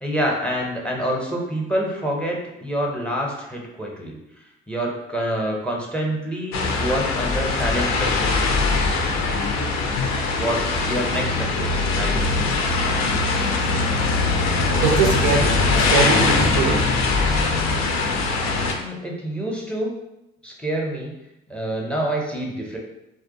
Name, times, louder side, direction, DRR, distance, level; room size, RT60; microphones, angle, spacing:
voice 1, 0.0-4.2 4.7-8.3 10.4-12.5 18.4-19.9 20.4-21.1 21.5-22.8, right 1 dB, 5° left, -1 dB, 0.6 m, -27 dB
sound 1, 6.5-18.7, left 3 dB, 60° left, 0.5 m, -21 dB
voice 2, 14.8-16.9, right 5 dB, 70° right, 2 dB, 0.4 m, -22 dB
2.3 x 2.2 x 2.6 m, 0.91 s
hypercardioid pair, 45°, 31 cm